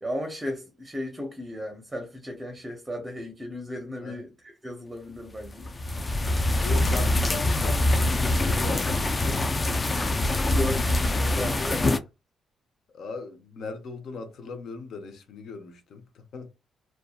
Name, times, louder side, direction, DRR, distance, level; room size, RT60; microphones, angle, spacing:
voice 1, 0.0-5.7 10.5-11.8, left 1 dB, 15° right, 0.6 m, -35 dB
sound 1, 5.5-12.0, left 2 dB, 25° left, 0.3 m, -24 dB
voice 2, 6.6-10.1 10.7-10.8 11.1-11.4 12.9-16.5, left 4 dB, 65° left, 0.7 m, -39 dB
2.6 x 2.2 x 2.3 m
cardioid pair, 90°, 0 cm